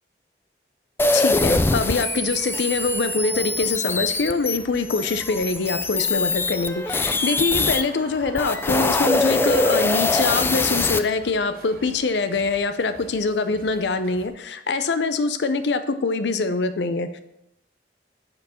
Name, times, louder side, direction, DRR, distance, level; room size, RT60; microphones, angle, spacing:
sound 1, 1.0-7.8 8.3-11.0, left 2 dB, 15° left, 0.3 m, -23 dB
voice 1, 1.1-17.2, left 3 dB, 80° left, 11 dB, 0.5 m, -24 dB
sound 2, 1.2-14.3, right 2 dB, 55° right, 1.1 m, -47 dB
sound 3, 4.8-9.9 10.2-10.3, right 2 dB, 80° right, 2.3 m, -48 dB
7.8 x 4.5 x 6.9 m, 0.80 s
head